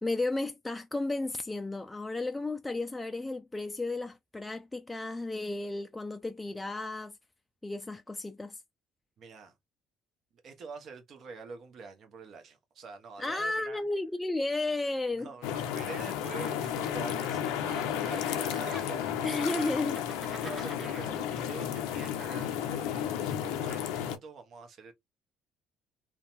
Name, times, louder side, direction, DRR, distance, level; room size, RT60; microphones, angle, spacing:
voice 1, 0.0-7.2 7.6-8.6 13.2-15.3 19.2-20.0, left 2 dB, 15° left, 0.3 m, -33 dB
voice 2, 9.2-9.6 10.4-13.8 15.1-19.8 20.3-24.9, right 4 dB, 50° right, 0.8 m, -45 dB
sound 1, 15.4-24.2, left 9 dB, 75° left, 0.5 m, -33 dB
Giggle, 16.6-17.5 17.7-19.2 19.8-21.0, right 2 dB, 30° right, 1.1 m, -47 dB
2.7 x 2.2 x 2.5 m
hypercardioid pair, 60°, 0 cm